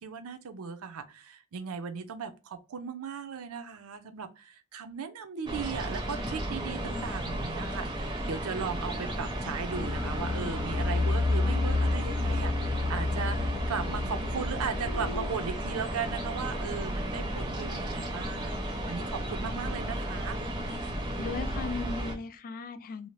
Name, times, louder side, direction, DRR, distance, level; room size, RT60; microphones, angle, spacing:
voice 1, 0.0-20.4, right 6 dB, 85° right, 0.5 m, -37 dB
sound 1, 5.5-22.1, right 1 dB, 20° right, 0.5 m, -34 dB
sound 2, 9.7-15.3, left 3 dB, 80° left, 0.6 m, -30 dB
voice 2, 21.2-23.1, left 4 dB, 40° left, 0.3 m, -36 dB
2.6 x 2.0 x 3.0 m
head